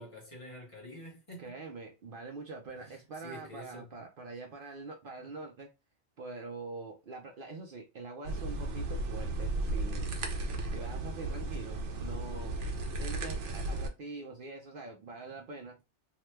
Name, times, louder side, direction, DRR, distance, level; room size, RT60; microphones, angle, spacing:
voice 1, 0.0-1.6 2.8-3.9, left 1 dB, 30° left, 0.9 m, -48 dB
voice 2, 1.4-5.7 6.2-10.1 10.7-12.6 13.0-15.8, right 3 dB, 55° right, 0.7 m, -44 dB
sound 1, 8.2-13.9, right 2 dB, 85° right, 1.0 m, -35 dB
2.9 x 2.2 x 3.1 m
omnidirectional pair, 1.2 m